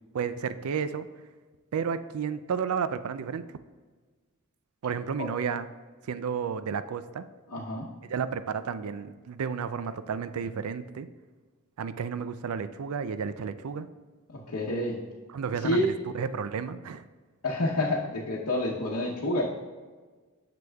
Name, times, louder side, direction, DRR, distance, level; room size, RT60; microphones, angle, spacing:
voice 1, 0.1-1.1 1.7-3.6 4.8-5.7 6.0-7.2 8.1-11.1 11.8-13.9 15.3-17.0, right 6 dB, 75° right, 13 dB, 0.4 m, -32 dB
voice 2, 7.5-7.9 14.3-15.0 15.6-15.9 17.4-19.4, left 1 dB, 85° left, -4 dB, 0.9 m, -28 dB
9.6 x 6.8 x 2.3 m, 1.4 s
head